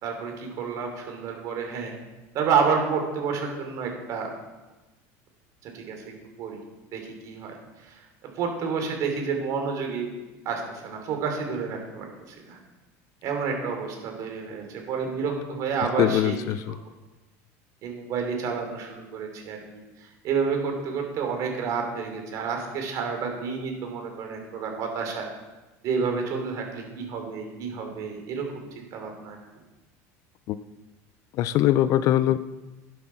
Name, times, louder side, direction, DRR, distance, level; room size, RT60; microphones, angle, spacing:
voice 1, 0.0-1.9 2.3-4.3 5.7-6.0 6.4-6.6 6.9-7.5 7.8-8.0 8.4-10.1 10.4-12.6 13.2-16.4 16.7-16.8 17.8-19.8 20.2-25.3 25.8-28.4 28.7-29.4, right 5 dB, 45° right, 3 dB, 3.1 m, -29 dB
voice 2, 16.0-16.8 30.5-30.6 31.3-32.4, left 12 dB, 45° left, 15 dB, 0.5 m, -22 dB
11.5 x 7.7 x 5.8 m, 1.1 s
supercardioid pair, 145°, 8 cm